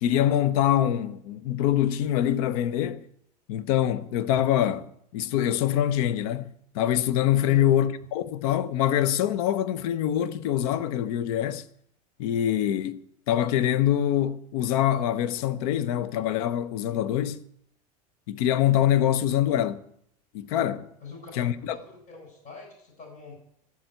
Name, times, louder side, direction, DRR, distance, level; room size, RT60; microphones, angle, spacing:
voice 1, 0.0-3.0 3.5-11.7 12.2-13.0 13.3-17.4 18.3-19.8 20.3-20.9 21.3-21.8, left 11 dB, 65° left, 1.0 m, -24 dB
voice 2, 21.0-23.4, left 3 dB, 40° left, 7.9 m, -45 dB
13.0 x 8.0 x 9.3 m
hypercardioid pair, 95°, 20 cm